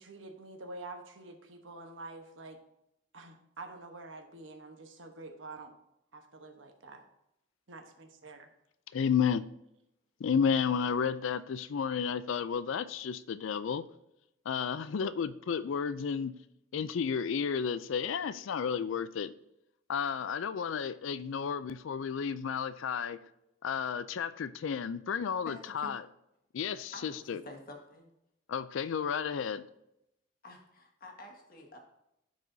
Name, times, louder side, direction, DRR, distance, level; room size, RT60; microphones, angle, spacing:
voice 1, 0.0-2.6 3.1-5.7 6.1-7.1 7.7-8.5, right 2 dB, 85° right, 1.1 m, -47 dB
voice 2, 8.9-9.4 10.2-13.8 14.5-16.3 16.7-19.3 19.9-23.2 23.6-26.0 26.5-27.4 28.5-29.6, left 6 dB, 85° left, 0.4 m, -32 dB
voice 3, 25.4-26.0 26.9-28.1 30.4-31.8, left 1 dB, 50° left, 1.5 m, -48 dB
13.5 x 4.8 x 2.7 m
head